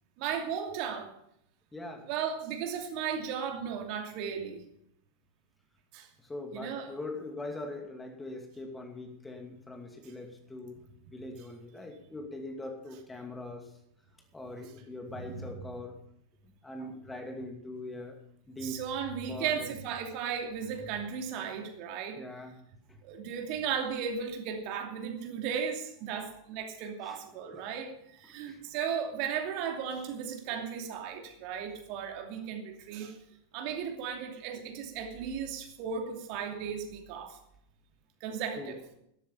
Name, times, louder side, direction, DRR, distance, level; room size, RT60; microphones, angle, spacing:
voice 1, 0.2-1.1 2.1-4.6 5.9-6.1 6.5-6.9 15.1-15.6 16.8-16.9 18.6-22.2 23.0-33.2 33.5-37.4 38.2-38.8, right 7 dB, 45° right, 4 dB, 2.6 m, -35 dB
voice 2, 1.7-2.1 6.2-10.8 11.1-13.7 14.3-15.9 16.6-18.2 18.5-18.8 19.3-19.7 22.2-22.6 27.0-27.2 27.5-27.6 28.5-28.6 38.6-38.7, left 2 dB, 10° left, 4 dB, 2.4 m, -42 dB
13.0 x 13.0 x 5.5 m, 0.74 s
figure-of-eight pair, 90°, 0 cm